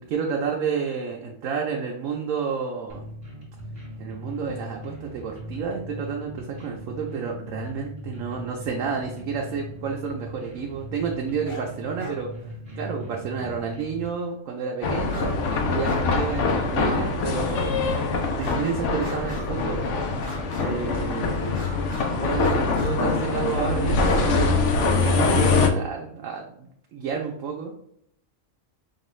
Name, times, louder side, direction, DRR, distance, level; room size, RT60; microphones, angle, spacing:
voice 1, 0.0-3.1 4.0-12.3 12.8-18.0 18.4-19.9 20.6-21.6 22.2-27.7, right 6 dB, 85° right, 0 dB, 1.0 m, -30 dB
sound 1, 2.9-14.1, equal, 25° right, 1.3 m, -39 dB
sound 2, 11.4-11.7 12.0-12.2 13.8-13.9 15.0-15.3 15.6-16.1 16.4-16.5 17.2-17.3 18.3-18.7 19.0-19.7 20.2-20.9 21.4-22.1 22.4-22.9 23.9-24.3, left 1 dB, 35° left, 1.0 m, -41 dB
sound 3, 14.8-25.7, left 3 dB, 70° left, 0.9 m, -23 dB
5.3 x 2.4 x 3.1 m, 0.71 s
omnidirectional pair, 1.3 m